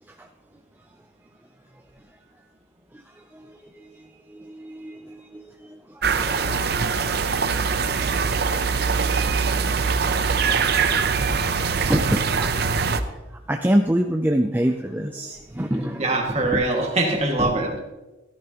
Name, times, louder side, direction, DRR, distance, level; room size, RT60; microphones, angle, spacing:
voice 1, 4.3-5.5 5.9-6.6 9.3-9.4 10.7-10.8 11.9-12.5 13.5-16.1 16.5-16.6 17.4-17.5, right 1 dB, 10° right, 4 dB, 0.4 m, -25 dB
sound 1, 6.0-13.0, right 5 dB, 55° right, 0.7 m, -22 dB
voice 2, 16.0-17.8, right 2 dB, 35° right, 0 dB, 2.0 m, -23 dB
14.0 x 13.5 x 3.0 m, 1.1 s
head